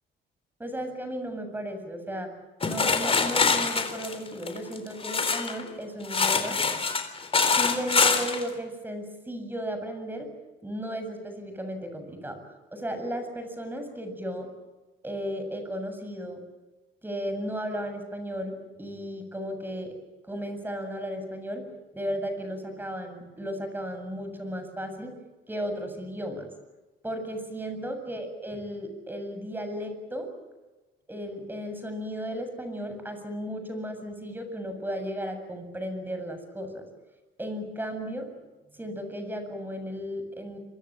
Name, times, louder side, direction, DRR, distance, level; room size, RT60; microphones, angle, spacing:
voice 1, 0.6-2.3 2.6-6.6 7.5-10.3 10.6-12.4 12.7-14.5 15.0-16.4 17.0-19.9 20.3-21.6 21.9-25.1 25.5-26.5 27.0-30.3 31.1-36.8 37.4-38.3 38.7-40.6, equal, 10° right, 7 dB, 7.5 m, -35 dB
sound 1, 2.6-5.6 6.0-8.4, left 4 dB, 30° left, 3.8 m, -24 dB
27.5 x 25.0 x 7.6 m, 1.2 s
cardioid pair, 115°, 19 cm